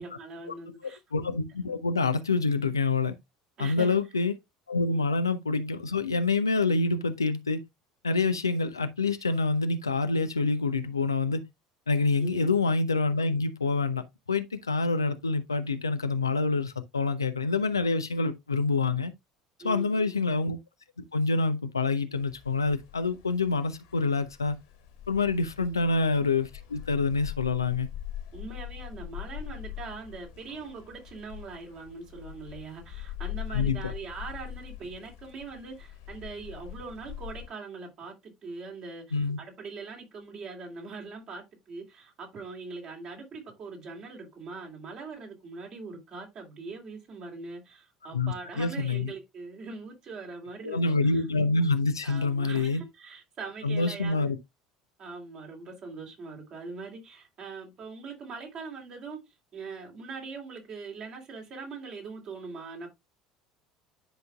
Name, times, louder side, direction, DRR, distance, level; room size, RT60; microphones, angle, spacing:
voice 1, 0.0-1.0 3.6-3.9 4.9-5.0 12.2-12.5 19.6-20.2 25.7-25.8 28.3-51.2 52.0-54.4 55.0-62.9, right 4 dB, 40° right, 3.0 m, -42 dB
voice 2, 1.1-3.1 3.6-4.3 4.7-7.6 8.0-11.4 11.9-14.0 14.3-19.1 19.6-20.6 21.1-24.6 25.1-27.9 33.5-33.8 39.1-39.4 48.1-49.1 50.6-52.8 53.6-54.4, left 3 dB, 80° left, 0.6 m, -26 dB
sound 1, 22.1-37.5, left 12 dB, 60° left, 1.7 m, -42 dB
10.0 x 5.3 x 2.3 m
figure-of-eight pair, 65°, 2 cm